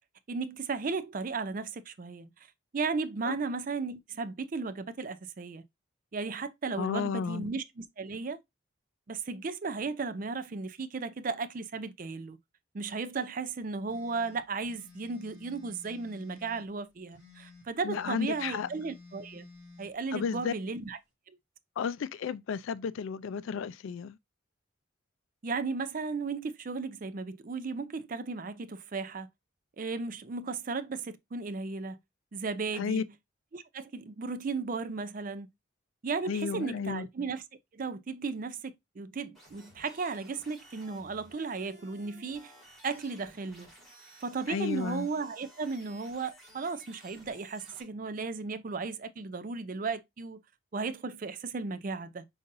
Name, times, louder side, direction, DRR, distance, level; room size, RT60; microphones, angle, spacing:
voice 1, 0.3-2.3 2.7-5.6 6.1-8.4 9.1-12.4 12.7-19.5 19.8-21.0 21.3-21.4 25.4-29.3 29.8-32.0 32.3-33.1 33.5-35.5 36.0-37.4 37.7-42.5 42.8-43.7 44.2-50.4 50.7-52.3, right 4 dB, 40° right, 0.4 m, -35 dB
voice 2, 6.8-7.5 17.8-18.7 20.1-20.5 21.8-24.2 32.7-33.0 36.3-37.1 44.5-45.1, left 6 dB, 70° left, 0.3 m, -33 dB
sound 1, 13.9-16.7 17.1-19.9, left 3 dB, 15° left, 3.0 m, -53 dB
sound 2, 39.3-47.8, right 1 dB, ahead, 2.3 m, -55 dB
5.3 x 3.9 x 2.5 m
head